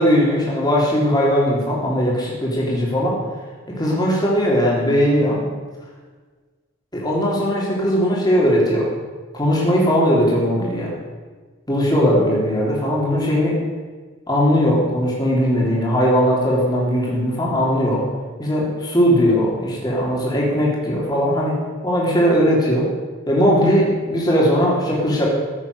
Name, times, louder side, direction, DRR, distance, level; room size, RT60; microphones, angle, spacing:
voice 1, 0.0-3.2 3.7-5.5 6.9-8.9 9.3-10.9 11.7-13.6 14.3-18.0 18.4-21.6 21.8-22.9 23.3-25.3, equal, 20° left, -4 dB, 3.5 m, -19 dB
14.5 x 8.5 x 6.8 m, 1.4 s
head